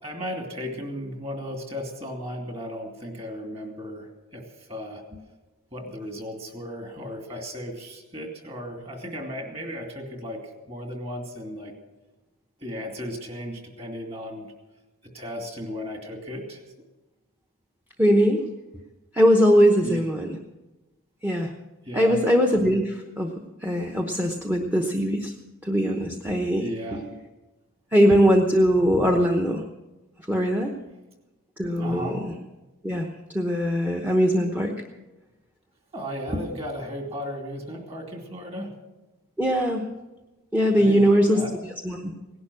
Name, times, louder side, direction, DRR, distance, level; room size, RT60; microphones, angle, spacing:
voice 1, 0.0-4.4 4.7-5.0 5.7-10.4 10.7-11.7 12.6-14.5 15.1-16.6 19.8-20.0 21.9-22.2 26.6-27.0 31.8-32.2 35.9-38.7 40.8-41.5, equal, 30° right, 3 dB, 2.7 m, -35 dB
voice 2, 18.0-18.4 19.1-20.4 21.2-21.5 21.9-23.3 23.6-25.3 25.6-27.0 27.9-29.6 30.3-30.7 31.6-32.3 32.8-33.1 33.3-34.7 39.4-39.9 40.5-41.4 41.8-42.1, equal, 10° right, 3 dB, 0.9 m, -21 dB
18.0 x 11.0 x 6.3 m, 1.1 s
head